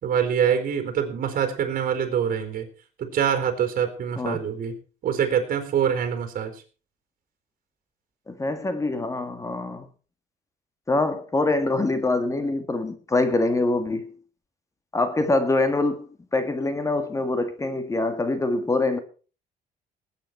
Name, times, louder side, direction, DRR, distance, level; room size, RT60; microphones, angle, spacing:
voice 1, 0.0-2.7 3.0-4.7 5.0-6.5, right 8 dB, 55° right, 4.1 m, -25 dB
voice 2, 8.3-9.9 10.9-14.1 14.9-19.0, left 2 dB, 20° left, 1.8 m, -24 dB
19.5 x 9.3 x 4.5 m
cardioid pair, 110°, 17 cm